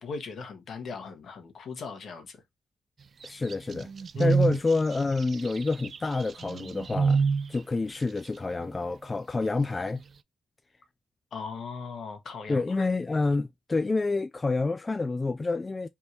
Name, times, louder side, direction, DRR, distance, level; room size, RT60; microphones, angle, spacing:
voice 1, 0.0-2.4 4.1-4.3 11.3-12.8, left 5 dB, 70° left, 1.2 m, -39 dB
voice 2, 3.2-3.9 4.2-10.0 12.5-15.9, left 3 dB, 35° left, 0.3 m, -28 dB
sound 1, 3.2-7.5, right 5 dB, 55° right, 0.3 m, -27 dB
3.6 x 2.6 x 4.5 m
supercardioid pair, 55°, 0 cm